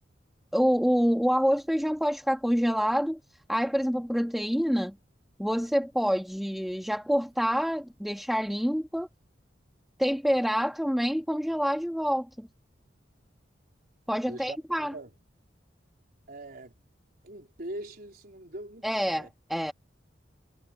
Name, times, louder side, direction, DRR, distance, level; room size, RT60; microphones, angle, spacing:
voice 1, 0.5-3.2 3.5-5.0 5.4-9.1 10.0-12.5 14.1-14.9 18.8-19.7, equal, ahead, 1.6 m, -27 dB
voice 2, 14.3-15.1 16.3-16.7 17.2-19.3, right 1 dB, 55° right, 4.1 m, -42 dB
head